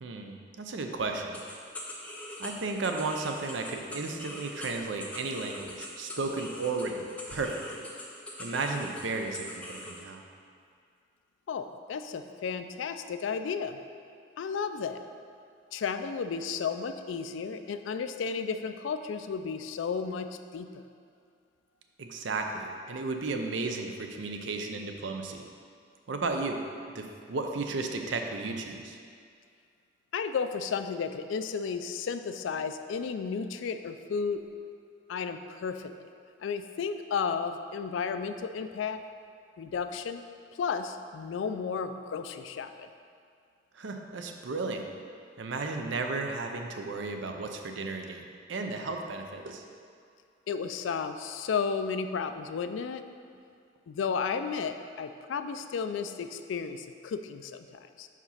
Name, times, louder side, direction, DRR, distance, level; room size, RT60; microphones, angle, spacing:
voice 1, 0.0-1.4 2.4-7.8 8.4-10.2 22.0-25.4 26.1-26.6 26.9-29.0 43.8-44.9 45.4-49.6, right 3 dB, 75° right, 4 dB, 0.5 m, -34 dB
sound 1, 1.3-10.0, left 1 dB, 5° left, 0.5 m, -43 dB
voice 2, 11.5-13.8 14.4-15.0 15.7-20.8 30.1-34.4 35.1-36.1 36.4-39.0 39.6-40.2 40.5-42.9 50.5-53.0 53.9-58.1, left 6 dB, 80° left, 9 dB, 0.3 m, -33 dB
4.9 x 4.0 x 5.6 m, 2.3 s
head